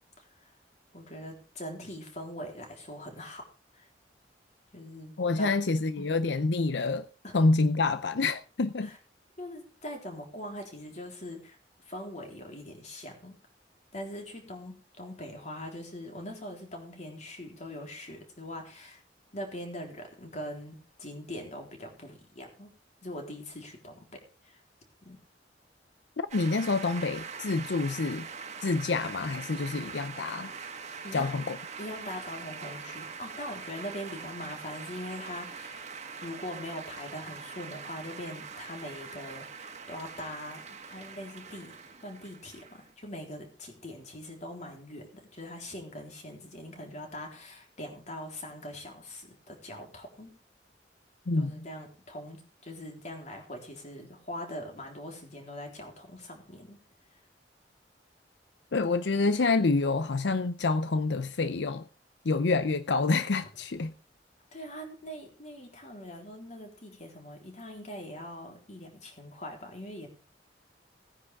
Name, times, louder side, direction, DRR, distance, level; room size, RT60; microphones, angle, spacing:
voice 1, 0.2-0.5 0.9-3.4 3.7-3.9 4.7-5.5 6.0-6.1 7.2-7.3 8.8-9.0 9.4-11.6 11.9-13.4 13.9-19.0 19.3-22.7 23.0-24.6 25.0-25.2 31.0-31.4 31.8-35.8 36.2-41.8 42.0-50.3 51.3-56.8 64.5-70.1, left 1 dB, 40° left, 3.9 m, -42 dB
voice 2, 5.2-7.1 7.3-8.9 26.2-28.3 28.6-30.5 31.1-31.6 51.3-51.7 58.7-61.9 62.2-63.9, left 3 dB, 85° left, 0.7 m, -27 dB
sound 1, 26.3-42.9, right 5 dB, 40° right, 1.6 m, -43 dB
17.5 x 10.0 x 3.6 m
head